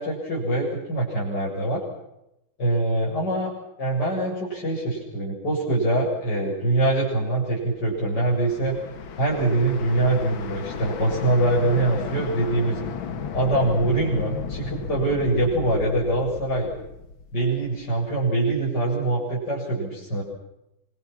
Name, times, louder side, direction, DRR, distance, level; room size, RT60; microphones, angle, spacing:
voice 1, 0.0-1.8 2.6-3.5 3.8-8.8 9.2-12.8 13.3-16.7 17.3-20.2, right 2 dB, 55° left, -5 dB, 8.5 m, -24 dB
sound 1, 7.8-17.8, left 6 dB, 75° left, 2.3 m, -34 dB
28.5 x 26.0 x 6.2 m, 0.86 s
omnidirectional pair, 2.2 m